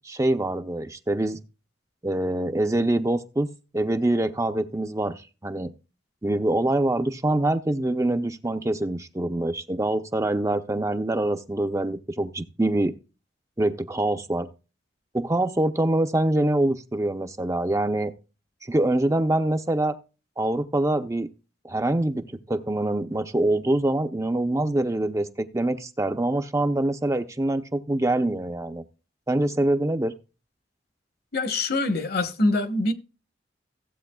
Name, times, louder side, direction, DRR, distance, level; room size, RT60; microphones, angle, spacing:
voice 1, 0.0-1.4 2.0-3.5 3.7-5.7 6.2-12.9 13.6-14.5 15.1-18.1 18.6-19.9 20.4-21.3 21.6-28.8 29.3-30.1, right 1 dB, 15° right, 0.6 m, -25 dB
voice 2, 31.3-32.9, left 2 dB, 55° left, 1.2 m, -24 dB
15.5 x 8.1 x 2.3 m
head